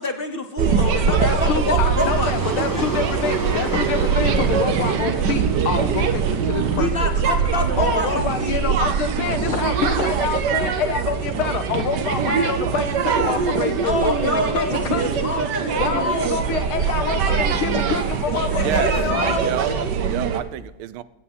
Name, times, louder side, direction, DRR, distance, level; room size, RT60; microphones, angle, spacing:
voice 1, 0.0-2.9 6.7-8.6 13.8-16.4 18.4-19.9, left 2 dB, 45° left, 6 dB, 0.7 m, -27 dB
sound 1, 0.6-20.4, right 6 dB, 60° right, 1.5 m, -22 dB
voice 2, 1.1-7.1 7.8-15.2 15.8-19.3, left 6 dB, 80° left, 8 dB, 2.1 m, -26 dB
sound 2, 2.0-18.1, right 1 dB, 15° right, 0.6 m, -37 dB
voice 3, 18.6-18.9 19.3-19.7 20.0-21.0, right 13 dB, 85° right, 16 dB, 1.5 m, -28 dB
15.5 x 8.4 x 5.5 m, 1.0 s
omnidirectional pair, 2.3 m